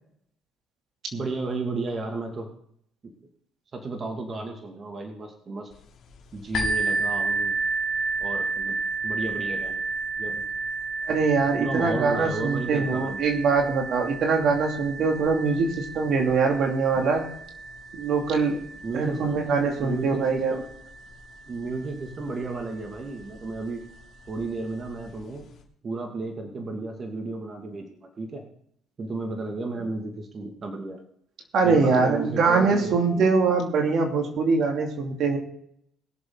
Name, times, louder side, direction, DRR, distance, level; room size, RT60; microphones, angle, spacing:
voice 1, 1.1-2.5 3.0-3.1 3.7-5.7 6.3-7.6 8.2-8.8 9.0-9.8 10.2-10.4 11.6-13.2 18.8-19.4 19.8-20.6 21.5-23.8 24.3-25.5 25.8-28.4 29.0-31.0 31.6-33.4, right 3 dB, 40° right, 2 dB, 2.3 m, -33 dB
sound 1, 6.5-22.1 22.9-23.0 23.5-23.6, right 3 dB, 60° left, 3.0 m, -32 dB
voice 2, 11.1-17.2 18.0-18.6 18.9-20.6 31.5-35.4, right 4 dB, 60° right, 2 dB, 2.8 m, -23 dB
21.5 x 7.3 x 4.0 m, 0.69 s
hypercardioid pair, 60°, 0 cm